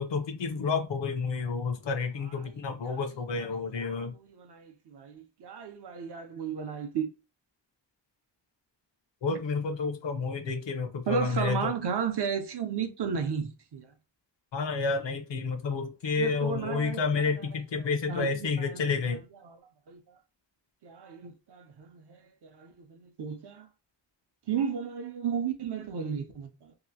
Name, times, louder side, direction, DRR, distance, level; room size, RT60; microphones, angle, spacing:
voice 1, 0.0-4.2 9.2-11.7 14.5-19.2, left 4 dB, 75° left, 0.7 m, -30 dB
voice 2, 3.4-7.1 11.1-13.9 16.2-17.5 18.1-18.8 19.4-19.6 19.9-20.2 20.8-23.7 24.5-26.8, right 6 dB, 65° right, 0.6 m, -34 dB
2.9 x 2.5 x 2.6 m
wide cardioid pair, 170°, 44 cm